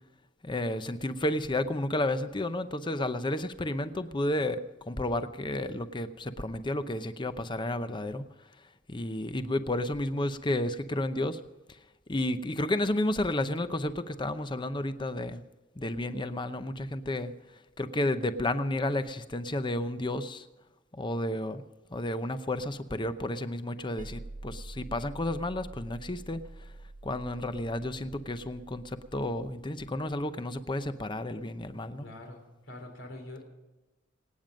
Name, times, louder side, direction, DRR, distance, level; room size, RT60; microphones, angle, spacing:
voice 1, 0.4-8.3 8.9-11.4 12.1-15.4 15.8-17.3 17.8-20.5 20.9-21.6 21.9-26.7 27.0-32.1, left 1 dB, 25° left, 11 dB, 0.7 m, -32 dB
sound 1, 24.0-29.5, right 2 dB, 40° right, 0.7 m, -46 dB
voice 2, 32.0-33.4, left 1 dB, 75° left, 3 dB, 3.3 m, -45 dB
26.0 x 9.1 x 5.2 m, 1.1 s
head